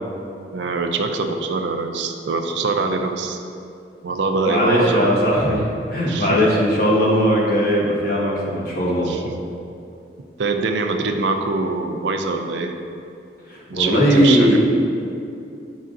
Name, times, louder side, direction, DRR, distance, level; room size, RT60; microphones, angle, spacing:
voice 1, 0.5-3.4 4.0-5.1 6.1-6.4 9.1-9.4 10.4-12.7 13.7-14.6, right 3 dB, 80° right, 4 dB, 0.5 m, -23 dB
voice 2, 4.5-9.1 13.5-14.6, equal, 50° left, -4 dB, 1.3 m, -18 dB
9.2 x 5.5 x 2.5 m, 2.5 s
head